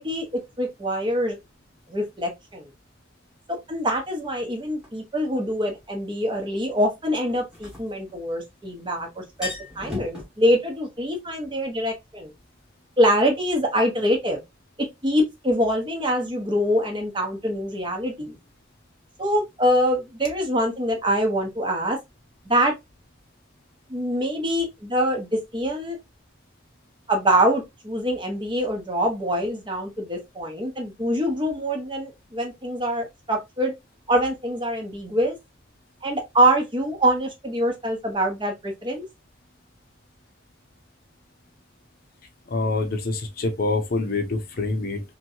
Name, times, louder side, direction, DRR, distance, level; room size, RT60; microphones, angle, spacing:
voice 1, 0.0-1.4 1.9-2.7 3.5-9.5 9.8-12.3 13.0-14.4 14.8-18.4 19.2-22.0 22.5-22.7 23.9-25.3 25.5-26.0 27.1-33.7 34.1-35.4 36.0-39.0, equal, 25° right, 0.8 m, -24 dB
sound 1, 4.8-4.9 7.3-8.6 8.9-9.0 9.2-10.2, left 2 dB, 5° right, 1.1 m, -35 dB
voice 2, 42.5-45.0, left 3 dB, 50° left, 0.6 m, -26 dB
2.9 x 2.7 x 2.6 m
head